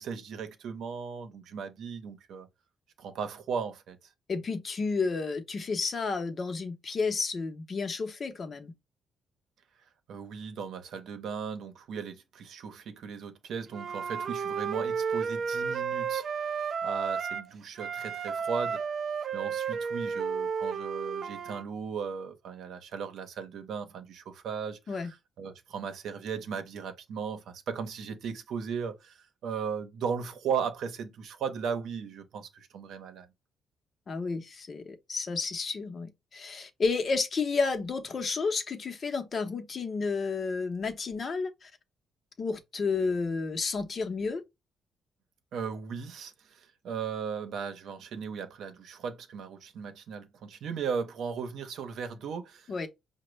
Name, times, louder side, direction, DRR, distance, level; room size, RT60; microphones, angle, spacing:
voice 1, 0.0-2.5 3.0-4.0 10.1-16.5 16.8-18.8 19.3-33.3 45.5-52.7, right 6 dB, 75° right, 0.7 m, -37 dB
voice 2, 4.3-8.7 24.9-25.1 34.1-41.7 42.4-44.4 52.7-52.9, left 4 dB, 45° left, 0.7 m, -31 dB
Wind instrument woodwind instrument, 13.7-17.5 17.8-21.6, right 6 dB, 55° right, 0.4 m, -32 dB
4.9 x 2.1 x 3.1 m
cardioid pair, 90°, 0 cm